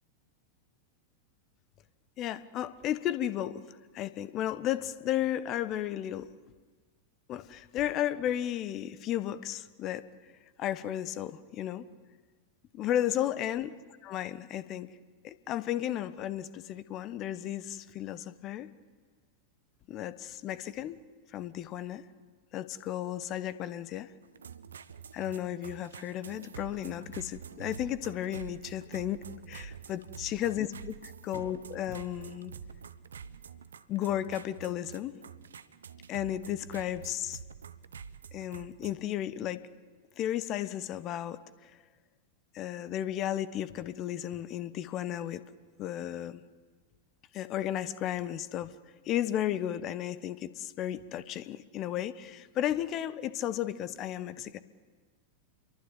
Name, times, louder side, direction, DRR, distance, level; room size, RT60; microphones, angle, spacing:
voice 1, 2.2-6.3 7.3-10.1 10.6-11.9 12.7-13.7 14.0-14.9 15.2-18.7 19.9-21.0 21.3-22.0 22.5-24.1 25.1-32.5 33.9-35.2 36.1-37.4 38.3-39.7 40.2-41.7 42.5-45.4 45.8-46.4 47.3-48.7 49.0-54.6, left 11 dB, 35° left, 16 dB, 1.3 m, -34 dB
sound 1, 24.2-38.9, right 7 dB, 70° right, 1.1 m, -47 dB
28.0 x 23.0 x 9.0 m, 1.4 s
figure-of-eight pair, 90°, 0 cm